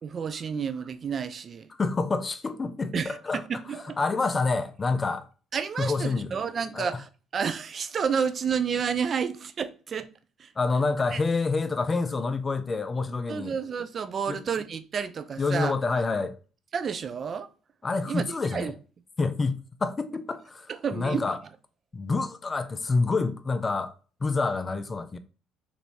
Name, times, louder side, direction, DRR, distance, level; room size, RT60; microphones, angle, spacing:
voice 1, 0.0-1.7 2.9-4.0 5.5-7.0 7.3-10.1 10.4-10.5 11.1-11.2 13.3-15.7 16.7-17.5 18.1-18.2 18.5-18.7 20.7-21.4, right 6 dB, 45° right, 0.4 m, -30 dB
voice 2, 1.7-3.4 4.0-5.3 5.8-6.4 6.7-6.9 10.6-13.5 14.3-14.4 15.4-16.4 17.8-18.7 19.2-21.4 21.9-23.9 24.2-25.2, left 3 dB, 30° left, 0.4 m, -27 dB
3.0 x 2.6 x 2.7 m
hypercardioid pair, 55°, 0 cm